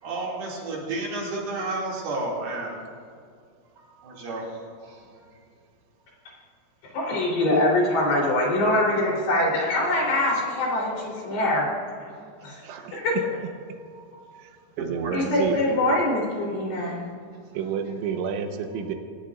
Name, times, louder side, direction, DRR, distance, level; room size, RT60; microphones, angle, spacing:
voice 1, 0.0-2.8 3.7-4.5 4.8-5.2 13.9-14.2 14.8-15.7, right 2 dB, 60° right, -4 dB, 4.4 m, -32 dB
voice 2, 6.9-11.7 12.0-12.1 12.4-12.6 12.9-13.2 15.1-17.0, left 1 dB, 60° left, -4 dB, 5.7 m, -23 dB
voice 3, 12.6-13.0 14.4-15.6 17.5-18.9, right 7 dB, 90° right, 5 dB, 3.5 m, -30 dB
25.0 x 17.5 x 2.6 m, 2.2 s
omnidirectional pair, 5.3 m